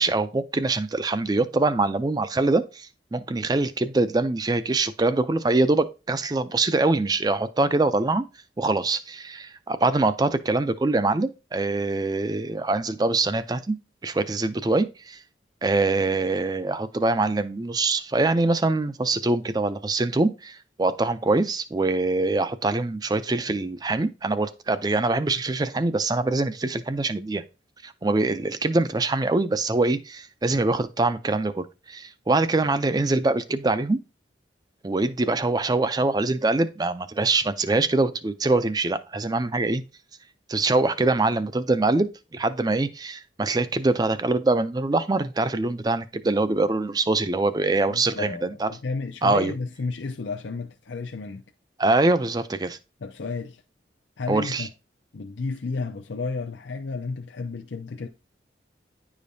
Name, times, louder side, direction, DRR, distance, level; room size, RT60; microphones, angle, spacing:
voice 1, 0.0-8.2 8.6-13.8 14.0-15.2 15.6-27.4 27.8-34.0 34.8-39.8 40.5-48.7 49.2-49.5 51.8-52.8 54.3-54.7, right 2 dB, 20° right, 0.4 m, -24 dB
voice 2, 47.9-51.4 53.0-53.6 54.2-54.7 55.1-58.1, left 4 dB, 85° left, 0.6 m, -32 dB
10.0 x 5.0 x 2.7 m
head